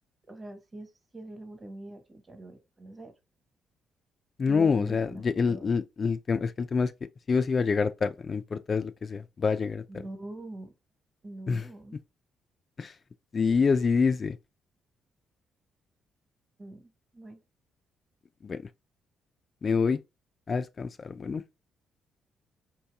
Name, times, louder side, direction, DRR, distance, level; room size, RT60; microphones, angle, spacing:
voice 1, 0.3-3.1 4.5-5.7 9.9-10.7 11.2-12.0 16.6-17.4, right 1 dB, 25° right, 1.2 m, -43 dB
voice 2, 4.4-6.9 7.3-9.8 11.5-11.7 12.8-12.9 13.3-14.4 18.4-18.6 19.6-20.0 20.5-21.4, left 5 dB, 40° left, 0.3 m, -26 dB
4.5 x 2.8 x 3.4 m
cardioid pair, 90°, 0 cm